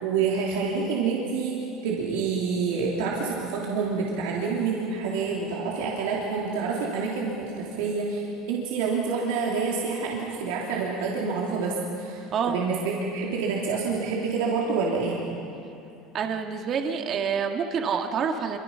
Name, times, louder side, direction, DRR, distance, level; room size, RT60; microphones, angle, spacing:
voice 1, 0.0-15.3, right 5 dB, 85° right, -4 dB, 3.2 m, -28 dB
voice 2, 16.1-18.6, right 6 dB, 45° right, 4 dB, 1.9 m, -27 dB
26.5 x 25.0 x 5.8 m, 2.7 s
supercardioid pair, 115°, 0 cm